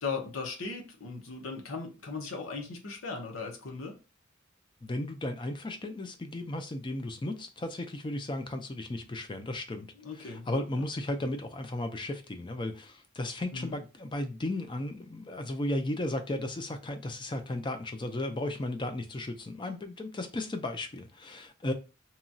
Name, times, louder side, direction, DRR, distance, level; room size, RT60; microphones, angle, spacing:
voice 1, 0.0-3.9 10.0-10.8 13.5-13.8, left 4 dB, 85° left, 0.8 m, -38 dB
voice 2, 4.8-9.9 10.1-21.7, left 1 dB, 25° left, 0.4 m, -35 dB
2.9 x 2.3 x 2.6 m
head